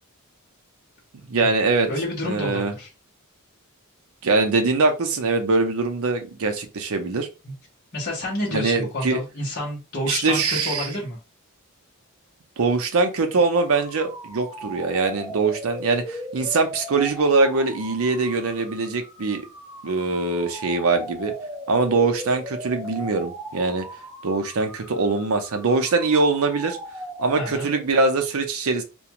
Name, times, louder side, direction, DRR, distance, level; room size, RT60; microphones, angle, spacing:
voice 1, 1.3-1.9 2.2-2.7 4.2-7.3 8.5-9.2 10.0-10.9 12.6-19.4 19.8-21.3 21.7-23.9 24.2-26.8 27.2-28.8, right 3 dB, 80° right, 6 dB, 0.6 m, -22 dB
voice 2, 1.9-2.9 7.4-7.5 7.9-11.2 27.4-27.7, left 1 dB, 50° left, -5 dB, 0.9 m, -29 dB
sound 1, 13.3-28.0, right 1 dB, 10° right, 0.5 m, -38 dB
2.4 x 2.2 x 2.8 m, 0.29 s
head